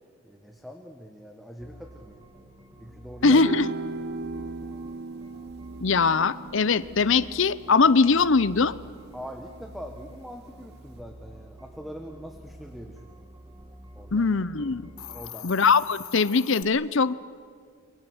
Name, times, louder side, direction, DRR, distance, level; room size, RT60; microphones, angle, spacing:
voice 1, 0.2-2.2 2.8-3.4 9.1-13.2 13.9-14.3 15.1-15.5, equal, ahead, 4 dB, 1.2 m, -42 dB
sound 1, 1.6-15.3, right 1 dB, 15° right, 1.7 m, -48 dB
voice 2, 3.2-3.7 5.8-8.8 14.1-14.8 15.4-17.1, left 4 dB, 55° left, 17 dB, 0.7 m, -21 dB
sound 2, 3.2-9.8, right 3 dB, 50° right, 0.8 m, -38 dB
Hiss, 14.8-16.6, left 11 dB, 85° left, 1.4 m, -42 dB
29.0 x 23.5 x 8.0 m, 2.2 s
head